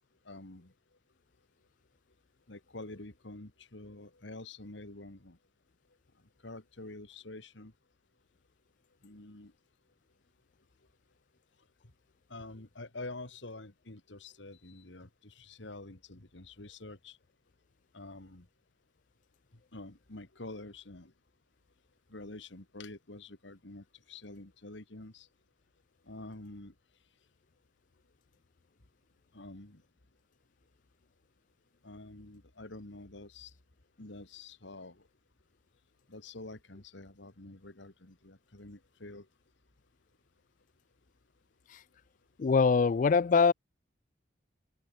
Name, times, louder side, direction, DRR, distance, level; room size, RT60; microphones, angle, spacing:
voice 1, 0.2-0.7 2.5-5.4 6.4-7.7 9.0-9.5 12.3-17.2 17.9-18.5 19.5-21.1 22.1-25.3 26.0-26.7 29.3-29.8 31.8-33.5 34.0-35.1 36.1-39.3, left 2 dB, 70° left, 2.3 m, -47 dB
voice 2, 42.4-43.5, left 5 dB, 45° left, 0.3 m, -23 dB
head